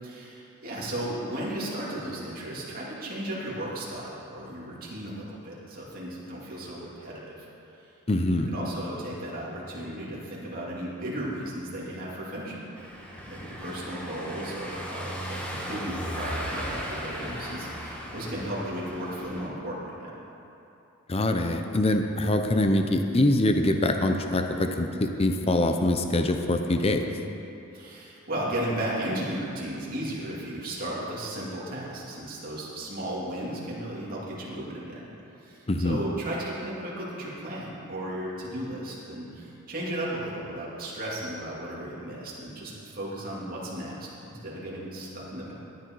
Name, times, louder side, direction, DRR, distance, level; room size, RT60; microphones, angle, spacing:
voice 1, 0.0-7.5 8.2-12.9 13.3-20.2 27.7-35.1 35.4-45.5, right 1 dB, 40° right, -6 dB, 2.7 m, -35 dB
voice 2, 8.1-8.5 21.1-27.0 35.7-36.0, left 1 dB, 30° left, 5 dB, 0.6 m, -24 dB
Car passing by / Engine, 12.8-19.5, equal, 5° left, 1.3 m, -36 dB
13.5 x 9.6 x 4.6 m, 2.9 s
head